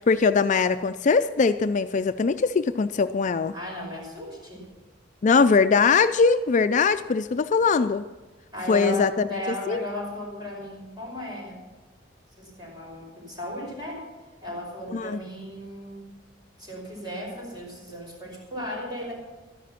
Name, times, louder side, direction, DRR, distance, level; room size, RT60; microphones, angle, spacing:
voice 1, 0.0-3.5 5.2-8.0 8.7-9.4 9.7-9.8 14.9-15.2, left 5 dB, 40° left, 11 dB, 0.4 m, -21 dB
voice 2, 3.5-4.6 8.5-11.6 12.4-14.0 14.4-16.0 16.6-19.1, equal, 25° right, -2 dB, 5.6 m, -35 dB
13.0 x 11.0 x 5.8 m, 1.2 s
head